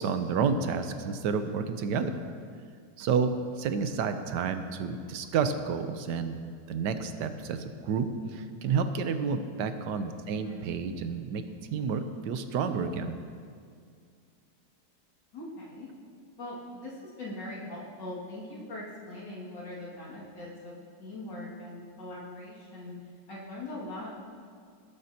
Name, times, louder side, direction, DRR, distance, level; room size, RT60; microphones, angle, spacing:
voice 1, 0.0-2.1 3.0-6.3 6.7-13.1, right 5 dB, 80° right, 9 dB, 1.3 m, -30 dB
voice 2, 15.3-15.9 16.4-22.9 23.3-24.2, left 1 dB, 85° left, -6 dB, 2.8 m, -41 dB
19.0 x 8.7 x 2.8 m, 2.2 s
omnidirectional pair, 1.9 m